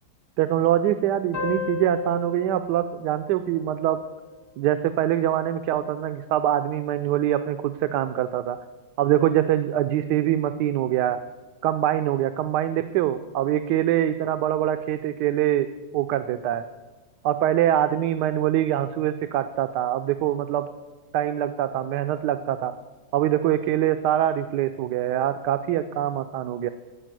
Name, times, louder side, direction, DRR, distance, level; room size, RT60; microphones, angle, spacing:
voice 1, 0.4-4.0 4.6-8.6 9.0-11.2 11.6-15.7 15.9-16.6 17.2-20.7 21.1-22.7 23.1-26.7, right 12 dB, 85° right, 10 dB, 1.2 m, -24 dB
sound 1, 1.3-4.5, left 4 dB, 65° left, 2.1 m, -34 dB
13.5 x 5.2 x 9.0 m, 1.2 s
omnidirectional pair, 1.8 m